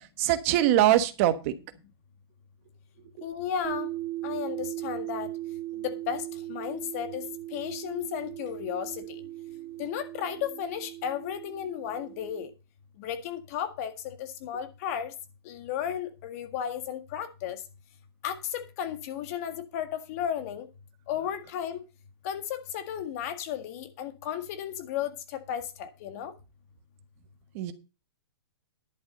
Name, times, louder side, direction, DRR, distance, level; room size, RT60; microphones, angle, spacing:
voice 1, 0.2-1.5 3.2-3.3 27.5-27.7, right 13 dB, 35° right, 1.3 m, -23 dB
voice 2, 3.2-3.9 4.2-5.3 5.8-6.2 6.5-7.2 7.5-9.2 9.8-12.5 13.0-15.1 15.5-17.6 18.2-20.7 21.1-21.8 22.2-26.3, left 9 dB, 35° left, 1.8 m, -34 dB
sound 1, 3.6-12.5, right 16 dB, 75° right, 2.3 m, -38 dB
11.0 x 7.1 x 5.4 m
hypercardioid pair, 165°, 13 cm